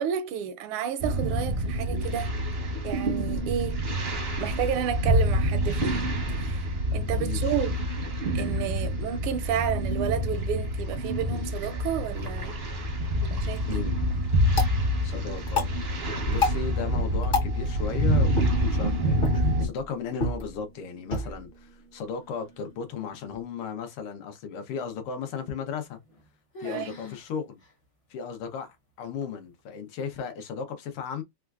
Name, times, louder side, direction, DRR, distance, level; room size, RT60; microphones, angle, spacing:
voice 1, 0.0-2.4 2.8-3.8 4.4-6.1 6.4-7.8 8.3-12.6 13.3-13.9 26.6-26.9, right 9 dB, 85° right, 1.5 m, -31 dB
sound 1, 1.0-19.7, equal, 55° right, 0.6 m, -27 dB
voice 2, 7.2-7.6 13.7-13.9 15.0-15.7 16.3-26.0 26.6-27.6 28.1-31.2, left 6 dB, 80° left, 1.7 m, -35 dB
sound 2, 13.4-23.4, left 3 dB, 45° left, 0.7 m, -34 dB
sound 3, 25.8-26.3 26.5-27.3 27.6-27.7 28.4-28.5 29.2-29.6, equal, 60° left, 0.3 m, -43 dB
4.2 x 2.3 x 2.4 m
omnidirectional pair, 2.4 m